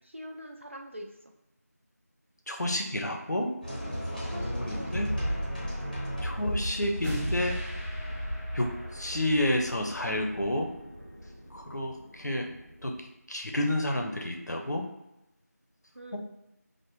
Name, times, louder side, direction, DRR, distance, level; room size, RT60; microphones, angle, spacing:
voice 1, 0.0-1.1 4.2-4.9 5.8-6.0 15.9-16.2, equal, 45° right, 2 dB, 0.4 m, -43 dB
voice 2, 2.5-3.5 4.4-5.1 6.2-7.6 8.5-10.7 11.5-12.5 12.8-14.9 16.1-16.2, left 1 dB, 80° left, 2 dB, 0.7 m, -30 dB
sound 1, 3.6-11.7, equal, 30° left, 0.7 m, -35 dB
sound 2, 4.7-5.0 7.0-13.0, equal, 5° left, 1.0 m, -41 dB
3.3 x 2.2 x 3.1 m, 0.92 s
figure-of-eight pair, 175°, 9 cm